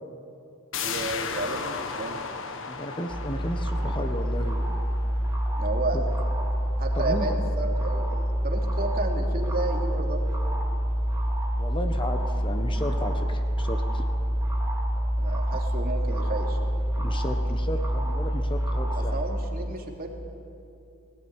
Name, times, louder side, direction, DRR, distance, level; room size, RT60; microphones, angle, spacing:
sound 1, 0.7-6.2 6.6-6.7, left 5 dB, 65° left, 1.5 m, -36 dB
voice 1, 0.8-2.2 5.6-6.2 6.8-10.2 15.2-16.6 18.9-20.1, right 2 dB, 45° right, 1 dB, 2.9 m, -32 dB
voice 2, 2.7-4.8 5.9-6.0 6.9-7.3 11.5-14.0 17.0-19.2, left 1 dB, 25° left, 6 dB, 1.3 m, -34 dB
sound 2, 3.1-19.2, equal, 15° right, 4.2 m, -27 dB
20.0 x 17.5 x 9.9 m, 2.7 s
head